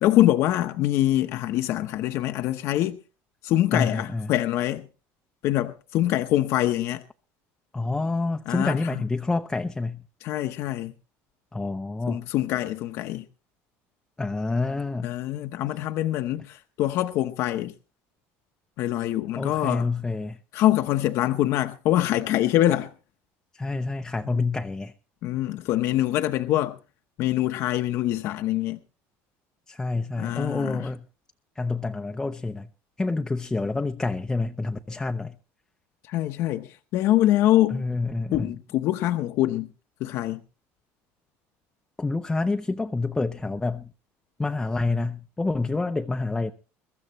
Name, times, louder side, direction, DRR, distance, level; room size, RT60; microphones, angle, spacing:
voice 1, 0.0-3.0 3.4-4.9 5.4-7.0 8.5-9.0 10.2-10.9 12.1-13.3 15.0-17.7 18.8-19.9 20.5-22.9 24.3-24.4 25.2-26.8 27.2-28.8 30.2-30.9 36.1-37.9 38.3-39.7 40.0-40.4, left 14 dB, 55° left, 0.8 m, -24 dB
voice 2, 3.7-4.3 7.7-10.0 11.5-12.3 14.2-15.2 19.4-20.4 23.5-24.9 29.7-31.0 31.6-32.7 33.0-35.4 37.7-38.5 42.0-43.9 44.4-46.5, left 3 dB, 10° left, 0.6 m, -28 dB
22.5 x 13.5 x 3.1 m
cardioid pair, 160°, 6 cm